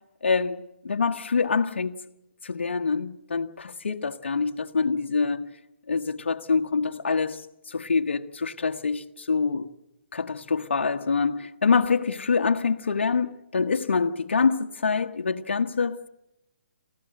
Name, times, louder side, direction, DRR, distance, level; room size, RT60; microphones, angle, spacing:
voice 1, 0.2-2.0 2.4-5.5 5.9-7.4 7.7-9.7 10.1-16.1, left 5 dB, 75° left, 1.2 m, -25 dB
28.0 x 15.0 x 7.7 m
hypercardioid pair, 145°, 6 cm